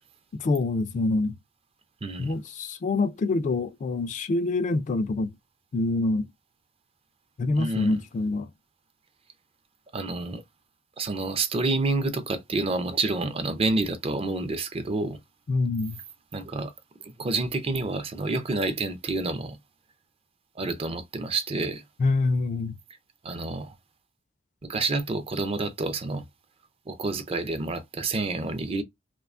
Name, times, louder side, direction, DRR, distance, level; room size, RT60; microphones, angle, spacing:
voice 1, 0.4-1.4 2.2-5.3 5.7-6.3 7.4-8.5 15.5-16.0 22.0-22.7, left 3 dB, 40° left, 0.3 m, -25 dB
voice 2, 2.0-2.4 7.6-8.0 9.9-10.4 11.0-15.2 16.3-16.7 17.0-19.6 20.6-21.8 23.2-23.7 24.6-26.2 26.9-28.8, right 3 dB, 30° right, 0.4 m, -28 dB
2.6 x 2.2 x 2.4 m
head